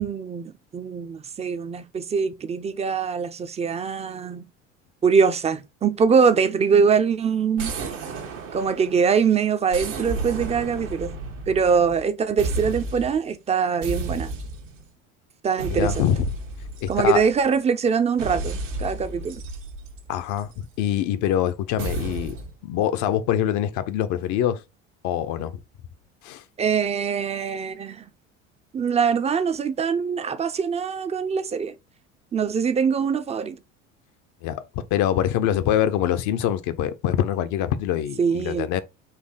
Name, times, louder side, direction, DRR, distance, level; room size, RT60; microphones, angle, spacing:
voice 1, 0.0-4.4 5.0-7.7 8.5-11.1 11.5-14.3 15.4-15.9 16.9-19.4 26.6-28.0 28.7-31.7 32.3-33.6 38.2-38.7, right 6 dB, 15° right, 0.5 m, -23 dB
sound 1, 7.6-9.2 9.7-12.1 12.4-13.2 13.8-14.8 15.6-17.5 18.2-20.6 21.8-22.5, right 3 dB, 75° right, 1.2 m, -32 dB
voice 2, 15.7-16.3 16.8-17.2 20.1-22.4 22.6-24.6 25.0-25.6 26.2-26.4 34.4-38.8, left 10 dB, 50° left, 0.7 m, -24 dB
4.4 x 2.7 x 3.8 m
hypercardioid pair, 70°, 38 cm